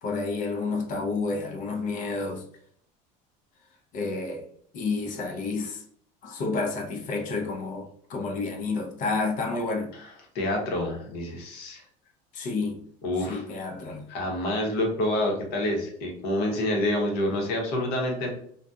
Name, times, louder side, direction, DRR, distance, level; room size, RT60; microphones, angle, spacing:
voice 1, 0.0-2.4 3.9-4.5 4.7-5.8 6.2-9.9 12.3-12.8 13.3-14.1, left 3 dB, 50° left, 0.5 m, -30 dB
voice 2, 10.3-11.8 13.0-13.5 14.1-18.3, left 1 dB, 65° left, 0.9 m, -27 dB
2.6 x 2.2 x 2.3 m
cardioid pair, 130°, 17 cm